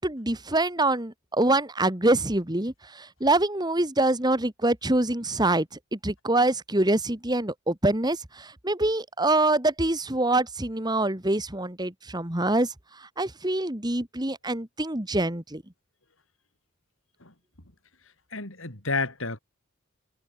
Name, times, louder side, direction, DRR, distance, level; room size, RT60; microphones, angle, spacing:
voice 1, 0.0-5.7 5.9-15.6, right 2 dB, 20° right, 2.0 m, -25 dB
voice 2, 18.3-19.4, left 3 dB, 70° left, 5.0 m, -30 dB
head